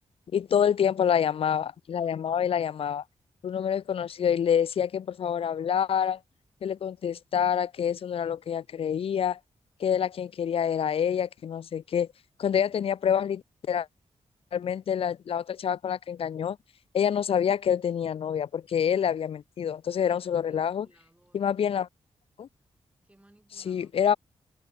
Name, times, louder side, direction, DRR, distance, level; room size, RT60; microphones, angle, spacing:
voice 1, 0.3-3.0 3.4-6.2 6.6-9.4 9.8-12.1 12.4-13.9 14.5-16.6 16.9-20.9 21.3-21.9 22.4-22.5 23.7-24.1, left 8 dB, 55° left, 0.4 m, -27 dB
voice 2, 20.0-21.4 23.0-23.9, right 1 dB, 10° right, 5.4 m, -61 dB
wide cardioid pair, 130°, 12 cm